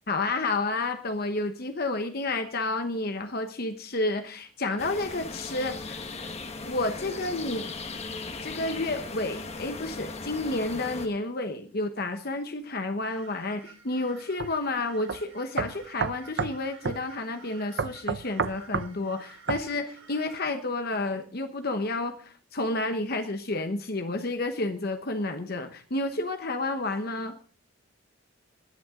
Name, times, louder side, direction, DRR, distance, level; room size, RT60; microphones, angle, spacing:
voice 1, 0.1-6.0 6.6-7.6 8.4-27.3, left 2 dB, 50° left, 7 dB, 1.1 m, -30 dB
sound 1, 4.8-11.1, left 3 dB, 30° left, 1.5 m, -38 dB
sound 2, 13.1-20.4, right 6 dB, 75° right, 4.0 m, -52 dB
sound 3, 14.4-14.5 15.1-15.2 15.6-16.6 16.9-17.0 17.8-18.9 19.5-19.7, right 5 dB, 60° right, 0.6 m, -29 dB
20.0 x 10.5 x 3.8 m, 0.40 s
head